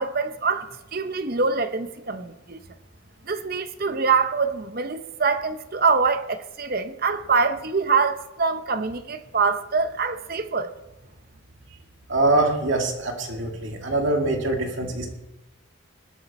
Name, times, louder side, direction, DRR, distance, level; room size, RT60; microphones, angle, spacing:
voice 1, 0.0-2.6 3.3-10.7, right 4 dB, 45° right, 0.8 m, -24 dB
voice 2, 12.1-15.1, right 2 dB, 60° right, 2.4 m, -23 dB
20.5 x 8.4 x 4.3 m
head